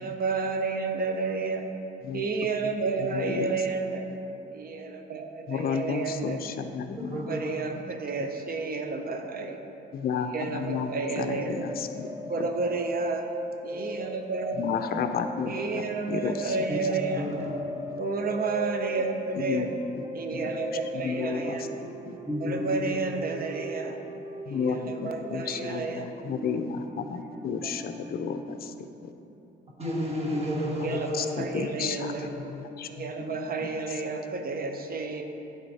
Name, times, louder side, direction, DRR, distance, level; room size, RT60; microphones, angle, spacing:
voice 1, 0.0-1.7 2.1-4.1 4.5-6.4 7.3-9.6 10.3-11.7 12.3-13.2 13.6-14.6 15.5-17.5 18.0-19.6 20.1-21.8 22.4-24.0 24.9-26.0 27.6-27.7 30.8-32.2 32.9-35.2, right 4 dB, 50° right, 5 dB, 0.7 m, -31 dB
voice 2, 3.0-3.7 5.5-7.6 8.2-8.3 9.9-12.7 14.5-16.9 17.3-17.6 19.3-20.0 20.3-21.7 22.1-22.2 24.4-29.1 30.8-34.0, left 6 dB, 50° left, 7 dB, 0.5 m, -33 dB
voice 3, 7.1-7.5 13.7-13.8 16.7-17.5 21.3-21.5 22.2-23.0 29.8-31.5 32.0-32.1 33.2-33.3, equal, 30° right, -3 dB, 1.6 m, -32 dB
sound 1, 11.4-28.8, equal, 15° right, 0.4 m, -39 dB
10.5 x 3.9 x 4.1 m, 2.9 s
cardioid pair, 90°, 20 cm